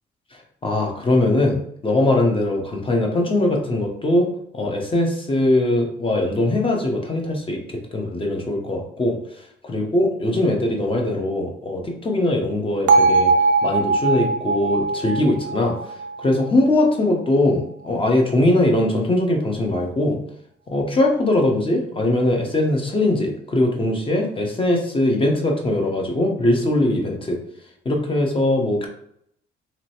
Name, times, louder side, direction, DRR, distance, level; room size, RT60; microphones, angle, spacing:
voice 1, 0.6-9.2 9.6-13.3 13.6-15.9 16.2-20.2 20.7-27.4 27.8-28.9, left 1 dB, 25° left, 1 dB, 0.8 m, -21 dB
Bell, 12.9-17.0, right 3 dB, 65° right, 0.5 m, -20 dB
3.1 x 2.9 x 2.9 m, 0.71 s
cardioid pair, 90°, 20 cm